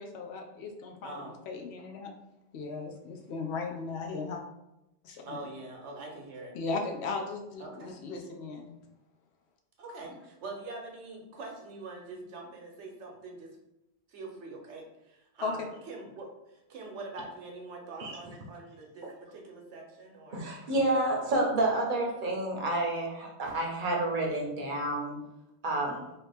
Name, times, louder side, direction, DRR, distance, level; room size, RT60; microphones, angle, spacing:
voice 1, 0.0-2.1 2.5-4.4 5.0-5.4 6.5-8.7 15.4-15.7, left 4 dB, 75° left, 3 dB, 0.8 m, -37 dB
voice 2, 1.0-1.4 5.3-6.5 7.6-8.0 9.8-13.6 14.1-20.4 25.9-26.1, right 3 dB, 85° right, 1 dB, 1.0 m, -44 dB
voice 3, 20.3-25.1 25.6-26.0, right 2 dB, 50° right, 0 dB, 0.8 m, -29 dB
2.8 x 2.8 x 3.3 m, 0.89 s
omnidirectional pair, 1.2 m